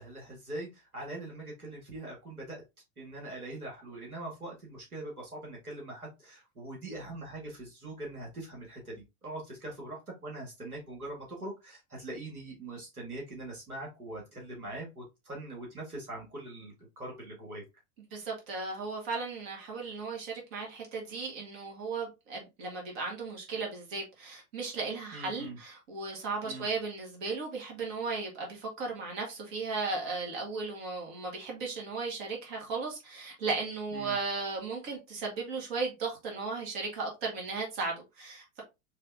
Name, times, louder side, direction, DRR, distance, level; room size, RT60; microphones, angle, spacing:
voice 1, 0.0-2.6 3.0-9.0 9.2-17.6 25.1-25.6 26.4-26.7 33.9-34.2, right 2 dB, 90° right, 1.9 m, -42 dB
voice 2, 18.1-38.6, right 4 dB, 45° right, 2.0 m, -36 dB
4.4 x 3.2 x 2.6 m
figure-of-eight pair, 95°, 43 cm